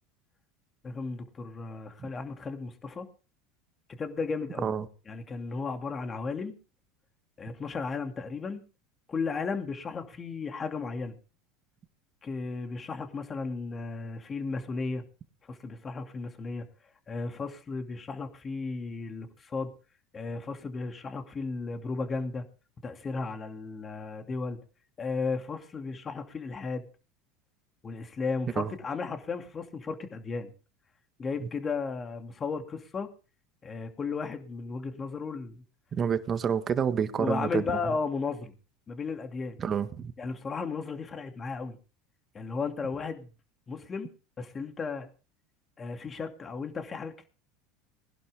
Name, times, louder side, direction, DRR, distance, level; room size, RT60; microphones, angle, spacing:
voice 1, 0.8-3.1 4.0-4.7 5.1-6.6 7.4-8.6 9.1-11.2 12.2-15.0 15.4-16.6 17.1-19.7 20.1-22.4 22.8-24.6 25.0-26.8 27.8-30.5 31.2-33.1 33.6-35.6 37.2-38.5 38.9-39.6 40.2-41.8 42.3-43.3 43.7-44.1 44.4-45.1 45.8-47.2, left 4 dB, 25° left, 6 dB, 2.6 m, -34 dB
voice 2, 35.9-37.7 39.6-40.1, right 7 dB, 30° right, 10 dB, 1.7 m, -28 dB
20.0 x 11.5 x 3.6 m, 0.34 s
supercardioid pair, 110°, 0 cm